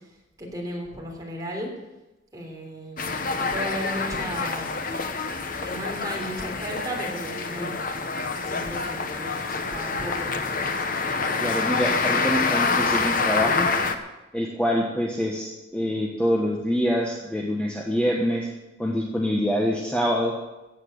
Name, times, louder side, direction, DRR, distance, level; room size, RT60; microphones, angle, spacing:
voice 1, 0.4-1.7 2.3-4.7 5.6-7.8 8.5-10.3 11.2-11.4, equal, 20° right, -1 dB, 3.4 m, -34 dB
sound 1, 3.0-14.0, left 4 dB, 45° left, 1.0 m, -27 dB
voice 2, 11.4-13.7 14.3-18.5 18.8-20.3, equal, 5° left, -2 dB, 1.3 m, -25 dB
15.0 x 8.6 x 6.6 m, 1.0 s
head